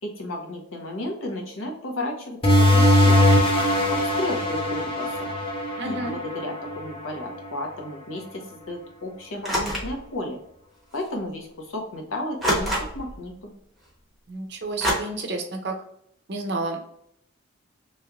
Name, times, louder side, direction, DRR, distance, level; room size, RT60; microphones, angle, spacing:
voice 1, 0.0-3.4 3.9-5.3 5.8-10.4 10.9-13.5, left 1 dB, 80° left, 2 dB, 0.9 m, -33 dB
sound 1, 2.4-7.6, left 1 dB, 25° left, 0.6 m, -21 dB
voice 2, 5.8-6.2 14.3-15.8 16.3-16.9, right 2 dB, 55° right, 4 dB, 0.7 m, -30 dB
sound 2, 9.4-10.0 11.0-11.1 12.4-13.2 14.8-14.9, equal, ahead, 0.9 m, -25 dB
3.2 x 3.1 x 2.4 m, 0.72 s
head